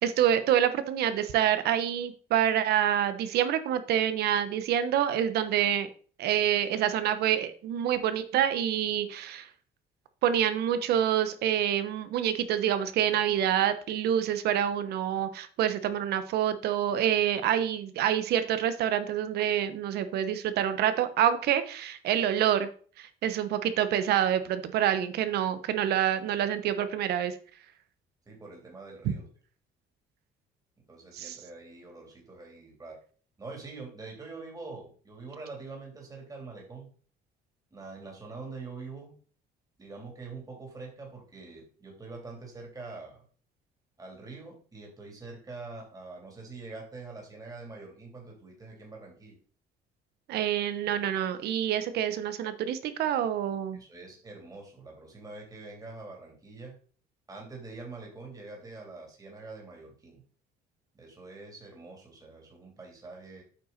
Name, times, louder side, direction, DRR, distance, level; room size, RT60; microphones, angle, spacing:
voice 1, 0.0-5.9 6.2-9.5 10.2-22.7 23.0-27.3 31.1-31.4 50.3-53.8, right 10 dB, 75° right, 11 dB, 1.0 m, -27 dB
voice 2, 28.3-29.3 30.9-33.0 33.4-36.9 37.7-39.1 39.8-43.2 44.0-49.4 53.7-56.7 57.3-60.2 60.9-63.4, right 3 dB, 20° right, 0 dB, 3.1 m, -44 dB
8.7 x 5.8 x 4.1 m, 0.43 s
cardioid pair, 110°, 17 cm